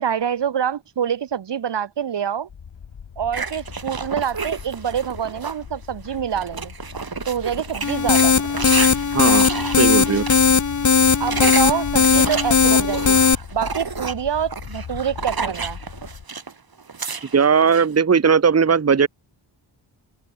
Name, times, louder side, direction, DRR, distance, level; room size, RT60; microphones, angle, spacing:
voice 1, 0.0-2.5 3.2-6.7 7.3-8.4 11.2-13.2 13.5-15.8, right 8 dB, 70° right, 1.3 m, -26 dB
sound 1, 2.5-16.2, left 7 dB, 85° left, 6.5 m, -38 dB
sound 2, 3.3-5.6 6.0-10.4 11.0-16.5 16.8-17.9, right 5 dB, 55° right, 6.0 m, -31 dB
sound 3, 7.8-13.3, left 6 dB, 40° left, 1.5 m, -17 dB
voice 2, 9.1-9.5 9.8-10.3 17.3-19.1, right 6 dB, 35° right, 1.1 m, -17 dB
open air
wide cardioid pair, 120°, 44 cm